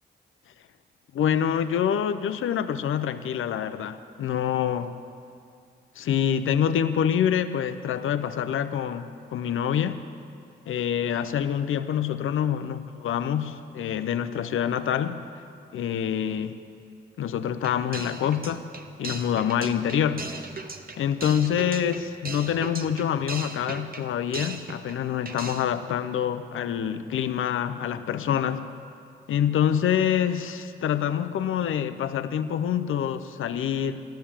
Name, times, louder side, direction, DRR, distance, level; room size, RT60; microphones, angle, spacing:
voice 1, 1.1-4.9 6.0-10.0 10.7-15.2 15.7-16.6 17.2-18.6 19.0-20.3 21.0-28.7 29.3-34.0, left 9 dB, 80° left, 10 dB, 0.6 m, -26 dB
sound 1, 17.6-25.0 25.3-25.8, right 3 dB, 45° right, 1.1 m, -38 dB
14.0 x 11.5 x 7.2 m, 2.4 s
supercardioid pair, 45°, 21 cm